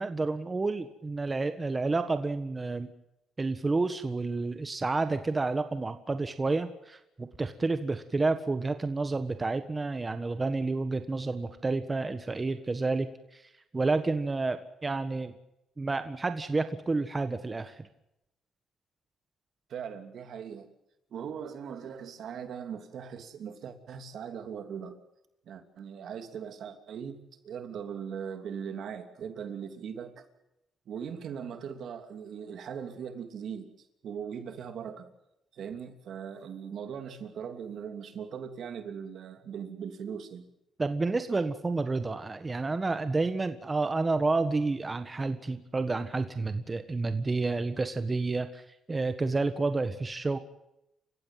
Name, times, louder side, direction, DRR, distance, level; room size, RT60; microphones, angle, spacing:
voice 1, 0.0-2.9 3.4-13.1 13.3-13.4 13.7-15.3 15.8-17.8 40.8-48.6 48.9-50.4, right 3 dB, 25° right, 9 dB, 1.5 m, -30 dB
voice 2, 19.7-20.7 21.1-25.0 25.5-30.3 30.9-33.7 34.0-35.1 35.5-40.5, right 7 dB, 65° right, 8 dB, 3.0 m, -40 dB
28.5 x 16.0 x 7.6 m, 0.87 s
cardioid pair, 90°, 0 cm